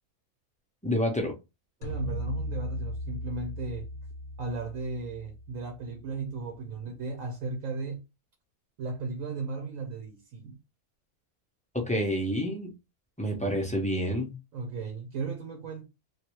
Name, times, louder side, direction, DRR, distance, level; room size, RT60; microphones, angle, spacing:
voice 1, 0.8-1.3 11.7-12.7 13.2-14.3, equal, 10° left, 0.4 m, -28 dB
sound 1, 1.8-6.2, equal, 75° left, 1.1 m, -37 dB
voice 2, 1.8-3.9 4.4-8.0 8.8-10.6 14.5-15.9, right 4 dB, 65° right, 1.1 m, -36 dB
3.1 x 2.6 x 3.0 m
omnidirectional pair, 1.6 m